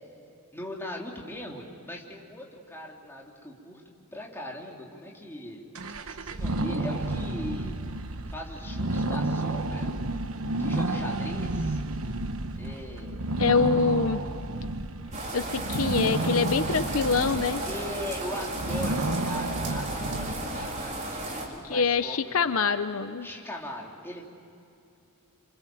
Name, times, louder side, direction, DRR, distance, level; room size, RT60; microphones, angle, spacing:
voice 1, 0.5-3.8 4.1-5.7 6.1-7.8 8.3-9.9 10.6-11.8 12.5-13.2 17.6-22.7 23.2-24.2, left 1 dB, 10° left, -2 dB, 3.4 m, -39 dB
sound 1, 5.7-21.2, right 2 dB, 70° right, 1.1 m, -31 dB
voice 2, 13.4-14.2 15.3-17.6 21.7-23.3, left 5 dB, 70° left, 11 dB, 0.8 m, -25 dB
sound 2, 15.1-21.5, right 1 dB, 35° right, 4.2 m, -34 dB
28.0 x 27.0 x 7.7 m, 2.6 s
head